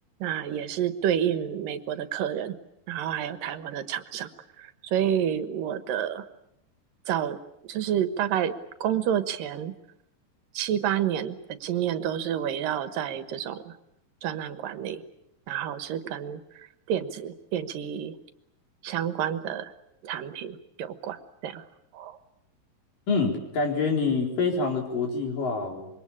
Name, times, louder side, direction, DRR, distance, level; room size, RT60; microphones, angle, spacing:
voice 1, 0.2-2.6 2.9-4.3 4.6-6.3 7.1-7.4 7.6-8.5 8.8-9.7 10.5-13.7 14.2-15.0 15.5-18.2 18.8-19.7 20.0-21.6 21.9-22.2, right 9 dB, 80° right, 11 dB, 3.0 m, -29 dB
voice 2, 23.1-25.9, left 4 dB, 70° left, 2 dB, 5.8 m, -26 dB
26.0 x 23.5 x 8.7 m, 0.81 s
omnidirectional pair, 3.9 m